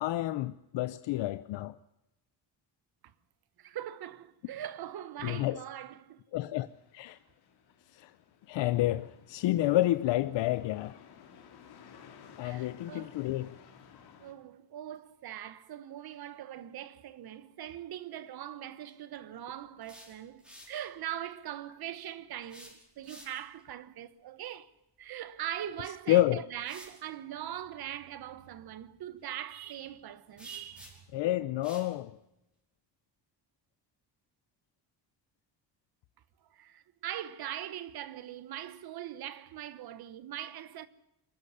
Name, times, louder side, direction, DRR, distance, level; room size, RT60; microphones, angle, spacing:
voice 1, 0.0-1.8 5.2-5.6 6.3-6.7 6.9-7.2 7.9-8.1 8.5-11.0 12.4-13.6 26.1-26.4 31.1-32.2, left 15 dB, 85° left, 0.8 m, -29 dB
voice 2, 3.6-6.2 12.4-13.2 14.2-24.7 25.0-31.0 36.5-40.9, right 11 dB, 60° right, 1.3 m, -41 dB
sound 1, 6.6-14.3, left 7 dB, 60° left, 3.2 m, -56 dB
sound 2, 19.6-20.8 22.4-23.6 25.7-25.8 26.6-27.0 30.4-31.2 31.6-31.9, equal, ahead, 5.2 m, -52 dB
23.0 x 13.5 x 9.8 m
cardioid pair, 160°, 43 cm